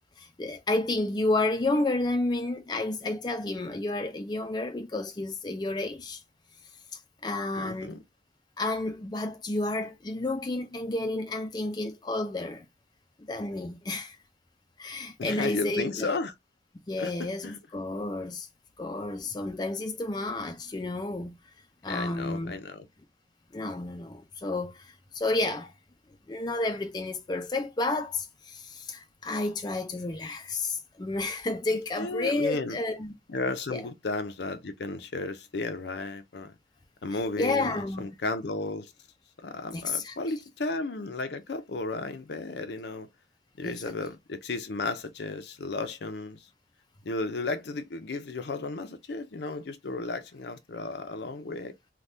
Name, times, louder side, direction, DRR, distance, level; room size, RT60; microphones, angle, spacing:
voice 1, 0.2-6.2 6.9-8.0 8.6-12.7 13.2-14.2 14.8-16.1 16.9-18.5 18.8-21.3 21.8-22.6 23.5-25.7 26.3-33.1 33.7-33.8 37.1-38.1 39.7-40.1 43.6-43.9, left 2 dB, 25° left, 0.4 m, -31 dB
voice 2, 7.5-8.0 15.2-16.3 17.0-17.6 21.9-22.9 32.0-32.8 33.3-36.5 37.0-38.9 39.4-43.1 43.6-46.4 47.0-51.7, left 3 dB, 70° left, 0.6 m, -34 dB
3.4 x 2.2 x 2.6 m
head